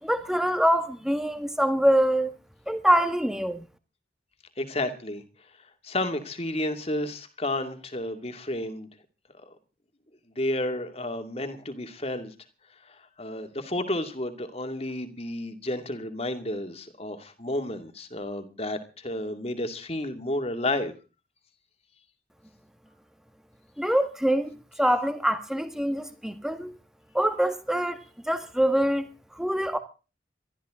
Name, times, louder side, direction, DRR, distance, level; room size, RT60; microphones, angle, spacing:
voice 1, 0.0-2.3 2.7-3.6 23.8-24.5 24.8-26.7 27.1-28.0 28.3-29.1 29.3-29.8, equal, 5° right, 1.7 m, -24 dB
voice 2, 4.6-5.2 5.8-8.9 9.4-9.5 10.4-12.3 12.9-20.9, left 1 dB, 35° left, 2.5 m, -31 dB
23.5 x 13.5 x 3.8 m
head